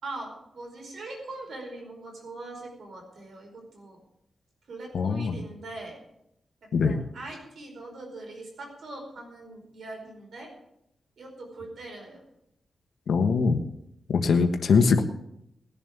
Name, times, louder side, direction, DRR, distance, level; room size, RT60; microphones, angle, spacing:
voice 1, 0.0-4.0 4.7-6.0 6.6-10.5 11.2-12.2, right 2 dB, 75° right, 1 dB, 4.9 m, -41 dB
voice 2, 4.9-5.3 6.7-7.0 13.1-13.6 14.1-15.0, left 5 dB, 80° left, 5 dB, 1.3 m, -22 dB
20.5 x 7.2 x 7.3 m, 0.79 s
wide cardioid pair, 100°, 0 cm